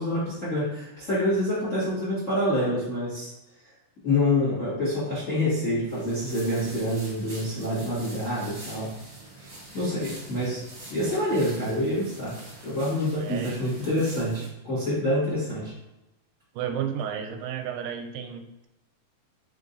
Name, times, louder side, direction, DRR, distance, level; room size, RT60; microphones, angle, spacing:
voice 1, 0.0-3.3 4.0-8.9 9.4-9.5 9.7-10.6 10.9-12.4 12.6-15.7, left 1 dB, 40° left, -9 dB, 1.1 m, -27 dB
sound 1, 5.9-14.5, right 1 dB, 45° right, 1.1 m, -45 dB
voice 2, 13.2-13.6 16.6-18.7, right 8 dB, 85° right, 5 dB, 2.4 m, -32 dB
5.4 x 3.6 x 2.6 m, 0.93 s
omnidirectional pair, 4.1 m